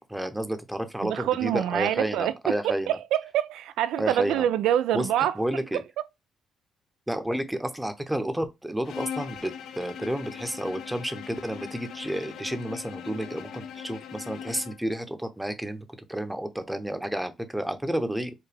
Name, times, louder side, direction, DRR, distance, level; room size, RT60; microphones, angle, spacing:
voice 1, 0.1-2.9 4.0-4.4 4.9-5.1 5.3-5.8 7.1-18.3, right 1 dB, 5° right, 0.7 m, -31 dB
voice 2, 1.0-5.4 5.7-5.8, right 11 dB, 85° right, 0.3 m, -26 dB
Bowed string instrument, 8.8-14.9, left 8 dB, 75° left, 0.5 m, -40 dB
4.7 x 2.2 x 3.3 m
cardioid pair, 75°, 0 cm